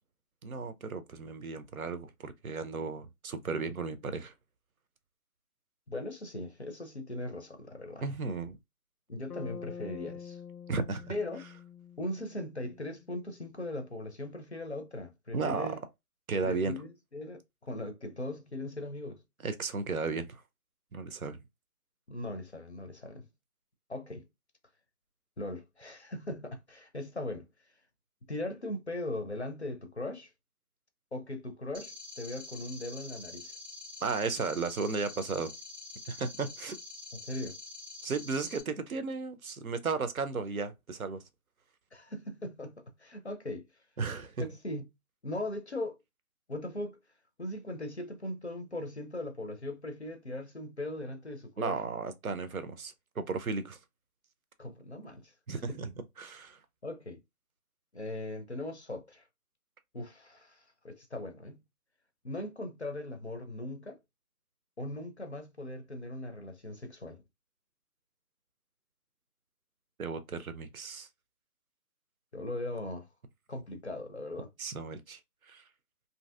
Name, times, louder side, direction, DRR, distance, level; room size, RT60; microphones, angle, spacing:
voice 1, 0.4-4.3 8.0-8.6 10.7-11.1 15.3-15.7 16.3-16.8 19.4-20.4 20.9-21.4 34.0-35.5 36.1-36.8 38.0-41.2 44.0-44.5 51.6-53.8 55.5-55.9 56.2-56.6 70.0-71.1 74.6-75.2 75.5-75.6, right 4 dB, 65° right, 0.6 m, -34 dB
voice 2, 5.9-8.1 9.1-10.4 11.1-11.4 12.0-15.8 16.4-19.2 22.1-23.3 23.9-24.2 25.4-27.5 28.3-30.3 31.1-33.6 37.1-37.6 41.9-43.6 44.4-44.9 45.2-46.0 46.5-47.0 47.4-51.8 54.6-55.3 55.7-55.9 56.8-57.2 57.9-59.2 59.9-61.6 62.2-64.0 64.8-67.2 72.3-73.1 73.5-74.5, left 1 dB, 45° left, 0.5 m, -39 dB
Bass guitar, 9.3-13.4, left 6 dB, 90° left, 0.7 m, -47 dB
sound 1, 31.7-38.6, left 3 dB, 30° right, 0.7 m, -46 dB
2.7 x 2.7 x 2.3 m
figure-of-eight pair, 170°, 46 cm